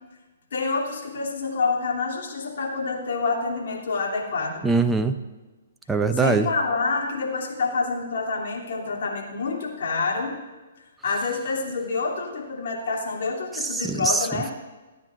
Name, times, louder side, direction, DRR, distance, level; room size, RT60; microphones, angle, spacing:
voice 1, 0.5-4.6 6.1-10.4 11.0-14.5, left 4 dB, 65° left, -2 dB, 2.9 m, -27 dB
voice 2, 4.6-5.1 5.9-6.5 13.7-14.4, right 4 dB, 10° right, 7 dB, 0.6 m, -22 dB
26.5 x 9.4 x 2.5 m, 1.2 s
hypercardioid pair, 135°, 0 cm